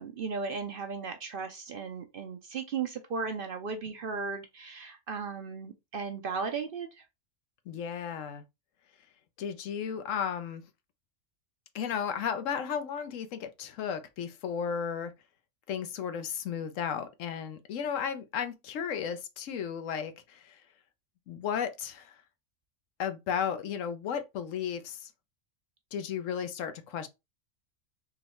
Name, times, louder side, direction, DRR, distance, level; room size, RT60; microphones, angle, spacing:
voice 1, 0.0-7.0, right 5 dB, 55° right, 0.7 m, -36 dB
voice 2, 7.7-8.4 9.4-10.6 11.7-15.1 15.7-20.6 21.3-22.2 23.0-25.1 25.9-27.1, left 7 dB, 80° left, 1.0 m, -34 dB
3.9 x 3.1 x 3.0 m
omnidirectional pair, 1.3 m